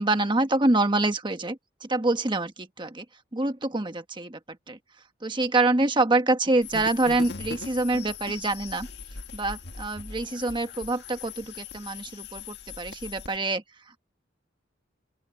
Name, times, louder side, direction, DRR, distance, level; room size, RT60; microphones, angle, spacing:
voice 1, 0.0-3.0 3.3-4.8 5.2-8.9 9.3-13.6, right 2 dB, 25° right, 1.4 m, -26 dB
sound 1, 6.6-13.4, left 5 dB, 60° left, 1.8 m, -40 dB
open air
head